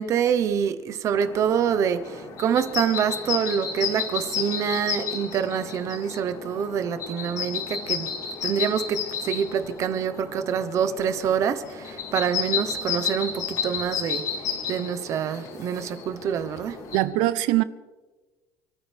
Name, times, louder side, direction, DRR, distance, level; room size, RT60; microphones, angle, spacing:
voice 1, 0.0-8.1 8.4-14.2 14.7-16.8, right 8 dB, 35° right, 1.0 m, -26 dB
sound 1, 1.1-17.0, left 7 dB, 40° left, 3.1 m, -32 dB
voice 2, 16.9-17.6, right 16 dB, 65° right, 0.8 m, -22 dB
29.0 x 13.5 x 3.5 m
cardioid pair, 170°, 9 cm